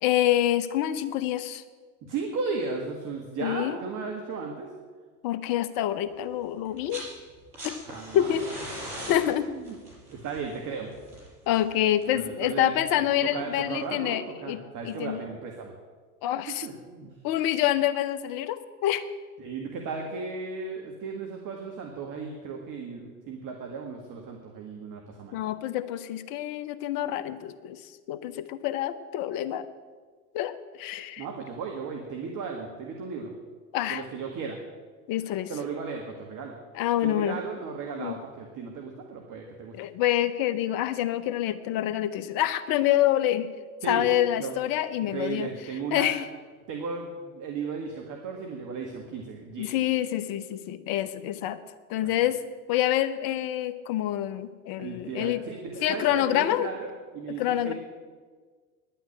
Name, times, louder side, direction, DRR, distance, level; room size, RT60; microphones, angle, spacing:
voice 1, 0.0-1.6 3.4-3.8 5.2-7.0 8.1-8.4 9.1-9.5 11.5-14.6 14.8-15.2 16.2-16.7 17.2-19.1 25.3-27.8 28.1-29.7 30.3-31.2 33.7-34.0 35.1-35.5 36.7-37.4 38.0-38.2 39.7-43.5 43.9-45.5 45.9-46.3 49.6-51.6 51.9-52.4 52.7-55.4 55.8-56.7 57.4-57.7, left 12 dB, 50° left, 13 dB, 1.0 m, -27 dB
voice 2, 2.0-4.7 7.9-8.4 9.5-9.7 10.1-10.9 12.1-12.7 13.2-15.7 16.5-17.2 19.4-25.4 31.2-33.3 33.9-34.6 35.5-36.5 37.0-39.8 43.8-44.0 44.4-44.5 45.0-46.1 46.7-49.8 52.0-52.1 54.8-57.7, right 5 dB, 45° right, 2 dB, 1.9 m, -35 dB
sound 1, 6.6-7.1 7.4-12.3 13.5-13.6, equal, 80° right, 5.1 m, -41 dB
11.0 x 9.0 x 8.5 m, 1.5 s
hypercardioid pair, 75°, 45 cm